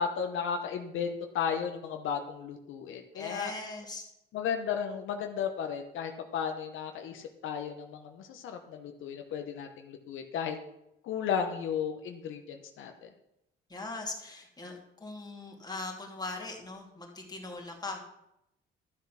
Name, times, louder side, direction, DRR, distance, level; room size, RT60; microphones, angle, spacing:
voice 1, 0.0-3.5 4.3-10.6 11.0-13.1, left 7 dB, 80° left, 5 dB, 1.1 m, -34 dB
voice 2, 3.1-4.1 13.7-18.1, left 2 dB, 20° left, 0 dB, 2.7 m, -40 dB
12.5 x 7.5 x 5.8 m, 0.83 s
cardioid pair, 90°, 20 cm